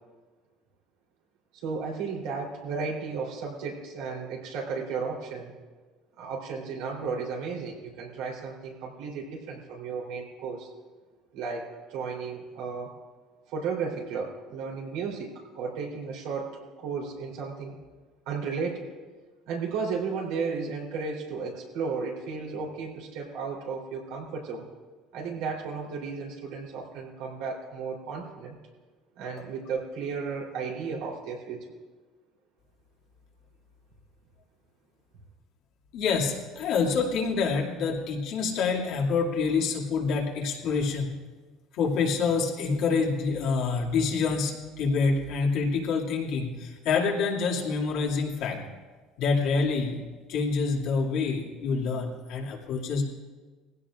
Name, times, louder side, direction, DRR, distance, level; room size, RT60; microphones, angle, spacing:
voice 1, 1.6-5.6 6.2-10.7 11.3-12.9 13.5-17.8 18.3-18.9 19.5-24.7 25.1-28.6 29.2-31.7, right 5 dB, 80° right, -2 dB, 3.6 m, -34 dB
voice 2, 35.9-41.1 41.7-48.6 49.2-50.0 50.3-53.0, left 4 dB, 70° left, -2 dB, 2.4 m, -27 dB
20.0 x 16.0 x 2.5 m, 1.4 s
supercardioid pair, 100°, 0 cm